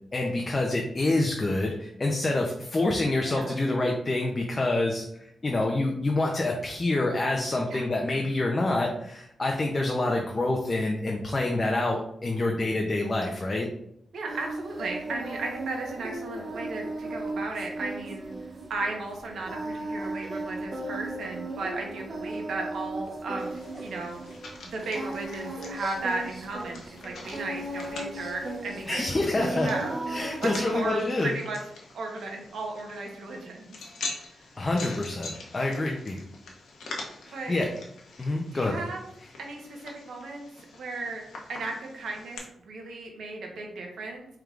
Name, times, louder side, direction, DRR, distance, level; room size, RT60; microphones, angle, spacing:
voice 1, 0.1-13.7 28.9-29.7 30.1-31.3 34.6-36.2 37.2-37.7 38.2-38.8, left 2 dB, 30° left, 0 dB, 0.6 m, -27 dB
voice 2, 3.2-3.6 7.7-7.9 14.1-18.3 18.7-23.5 23.8-24.2 24.7-29.0 29.4-30.0 30.4-31.6 31.9-33.8 34.1-34.3 37.3-37.5 38.5-39.0 39.4-40.5 40.8-41.2 41.5-44.3, right 3 dB, 80° right, 1 dB, 1.0 m, -35 dB
Singing, 14.3-30.9, right 2 dB, 40° right, 0.7 m, -36 dB
sound 1, 23.4-42.4, left 3 dB, 85° left, 0.8 m, -44 dB
4.7 x 3.5 x 2.4 m, 0.75 s
cardioid pair, 95°, 0 cm